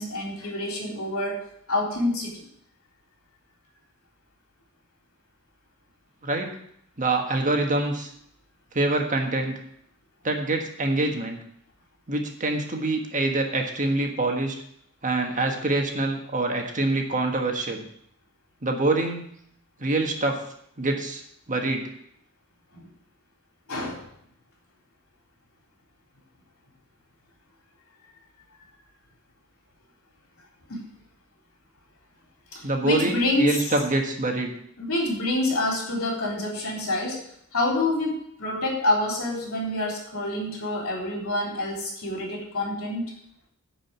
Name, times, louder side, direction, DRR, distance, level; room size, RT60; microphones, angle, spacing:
voice 1, 0.0-1.4 1.7-2.4 23.7-24.0 30.7-30.8 32.5-33.6 34.8-37.2 37.5-43.1, left 1 dB, 70° left, -1 dB, 3.6 m, -27 dB
voice 2, 7.0-8.1 8.7-9.6 10.2-11.4 12.1-14.5 15.0-17.9 18.6-19.2 19.8-20.4 20.8-21.2 21.5-21.9 32.6-34.5, right 2 dB, 35° right, 3 dB, 1.5 m, -25 dB
10.5 x 5.1 x 8.1 m, 0.69 s
head